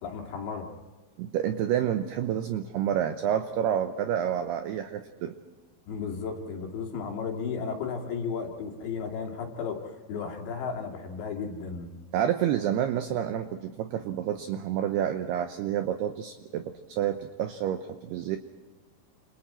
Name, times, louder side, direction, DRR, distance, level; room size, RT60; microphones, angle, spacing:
voice 1, 0.0-0.7 5.9-11.9, left 5 dB, 65° left, 1 dB, 4.5 m, -34 dB
voice 2, 1.2-5.4 12.1-18.4, right 10 dB, 90° right, 7 dB, 2.3 m, -29 dB
29.0 x 28.0 x 4.4 m, 1.3 s
omnidirectional pair, 5.8 m